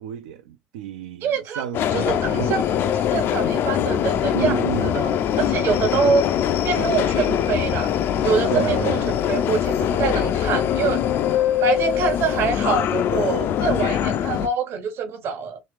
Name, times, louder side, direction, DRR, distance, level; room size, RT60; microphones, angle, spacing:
voice 1, 0.0-2.6 4.3-4.9 8.5-9.1, right 10 dB, 70° right, 0.4 m, -31 dB
voice 2, 1.2-1.6 1.9-2.6 3.1-6.2 6.6-7.9 8.2-11.0 11.6-15.6, right 5 dB, 50° right, 1.0 m, -25 dB
Subway metro underground, 1.7-14.5, left 10 dB, 50° left, 0.4 m, -22 dB
3.1 x 3.0 x 3.2 m
figure-of-eight pair, 55°, 5 cm